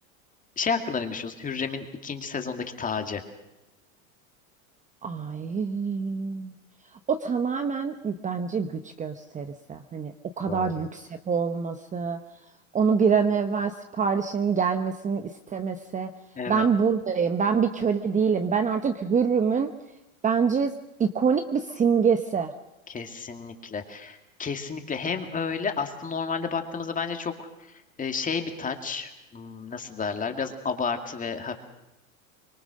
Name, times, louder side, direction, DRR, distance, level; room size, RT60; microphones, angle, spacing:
voice 1, 0.6-3.2 10.5-10.8 16.4-16.7 22.9-31.5, left 5 dB, 20° left, 6 dB, 2.4 m, -31 dB
voice 2, 5.0-6.5 7.1-12.2 12.7-16.1 16.5-19.7 20.2-20.7 21.0-22.5, right 6 dB, 15° right, 8 dB, 1.0 m, -25 dB
24.5 x 22.0 x 6.5 m, 0.95 s
supercardioid pair, 120°, 43 cm